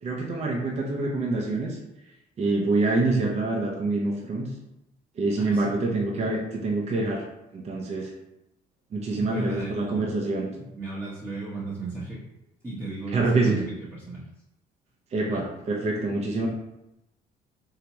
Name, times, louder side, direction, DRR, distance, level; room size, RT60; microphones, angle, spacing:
voice 1, 0.0-1.8 2.4-4.5 5.2-7.2 7.5-8.1 8.9-10.5 13.1-13.6 15.1-16.5, right 3 dB, 40° right, -1 dB, 0.6 m, -26 dB
voice 2, 5.4-5.7 9.2-10.1 10.5-12.2 12.6-14.2 15.3-15.4, right 3 dB, 15° right, -8 dB, 0.9 m, -35 dB
3.3 x 2.8 x 2.9 m, 0.90 s
cardioid pair, 110°, 17 cm